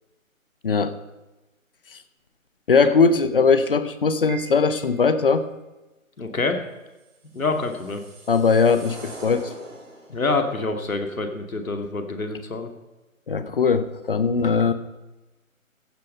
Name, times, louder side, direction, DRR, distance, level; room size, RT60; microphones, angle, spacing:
voice 1, 2.7-5.5 8.3-9.5 13.3-14.7, left 5 dB, 40° left, 12 dB, 1.1 m, -20 dB
Piano, 4.3-5.3, right 9 dB, 40° right, 2.6 m, -43 dB
voice 2, 6.2-6.6 7.3-8.0 10.1-12.7 14.6-14.7, left 3 dB, 75° left, 5 dB, 2.5 m, -26 dB
sound 1, 7.1-10.3, right 2 dB, 5° right, 1.1 m, -42 dB
15.0 x 8.8 x 5.6 m, 1.1 s
figure-of-eight pair, 160°, 41 cm